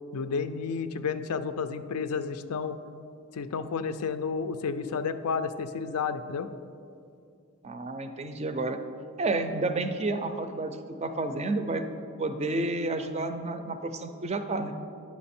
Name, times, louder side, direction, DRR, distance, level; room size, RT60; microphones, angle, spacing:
voice 1, 0.1-2.8 3.3-6.5, left 5 dB, 85° left, 11 dB, 0.4 m, -31 dB
voice 2, 7.6-8.8 9.2-10.7 11.0-11.8 12.2-14.7, right 2 dB, 30° right, 8 dB, 0.4 m, -30 dB
9.5 x 6.0 x 4.3 m, 2.5 s
head